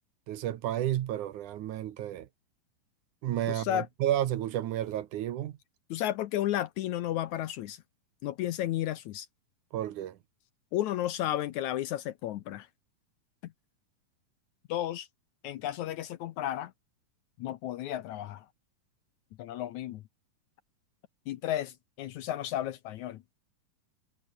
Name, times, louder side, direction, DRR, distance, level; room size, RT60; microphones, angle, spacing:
voice 1, 0.3-2.3 3.2-5.6 9.7-10.2, right 12 dB, 70° right, 2.5 m, -31 dB
voice 2, 3.5-3.9 5.9-7.8 8.2-9.3 10.7-12.7 13.4-13.5 14.7-15.1 15.4-16.7 17.4-18.5 19.4-20.0 21.3-23.2, left 13 dB, 75° left, 1.9 m, -33 dB
omnidirectional pair, 3.9 m